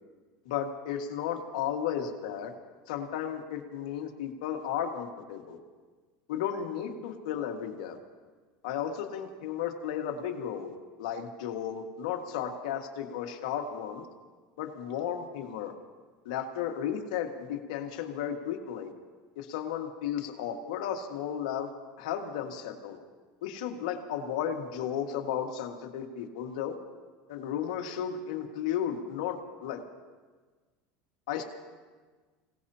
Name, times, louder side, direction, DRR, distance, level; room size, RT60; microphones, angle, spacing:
voice 1, 0.4-2.5 2.9-5.6 6.3-8.0 8.6-14.1 14.6-15.7 16.2-18.9 19.4-21.7 22.0-23.0 23.4-26.7 27.3-29.8 31.3-31.4, left 9 dB, 80° left, 4 dB, 1.7 m, -34 dB
26.5 x 17.5 x 2.8 m, 1.4 s
supercardioid pair, 115°, 4 cm